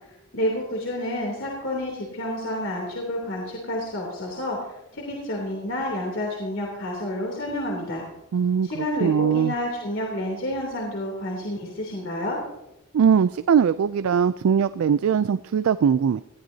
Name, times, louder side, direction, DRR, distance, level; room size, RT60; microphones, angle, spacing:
voice 1, 0.3-8.0 8.6-12.4, left 1 dB, 65° left, -2 dB, 3.0 m, -29 dB
voice 2, 8.3-9.5 12.9-16.2, right 7 dB, 80° right, 14 dB, 0.3 m, -21 dB
20.5 x 14.0 x 2.8 m, 0.88 s
head